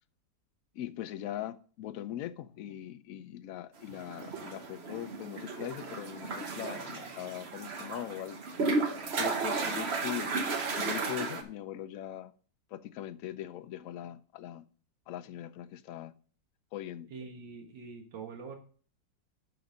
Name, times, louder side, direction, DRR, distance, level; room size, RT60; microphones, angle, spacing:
voice 1, 0.7-8.4 9.2-10.3 10.7-12.3 12.7-14.6 15.1-16.1 16.7-17.1, left 12 dB, 70° left, 0.8 m, -41 dB
sound 1, 3.9-11.4, right 3 dB, 45° right, 1.1 m, -34 dB
voice 2, 17.1-18.6, right 5 dB, 80° right, 2.1 m, -44 dB
12.0 x 4.0 x 5.2 m
omnidirectional pair, 2.0 m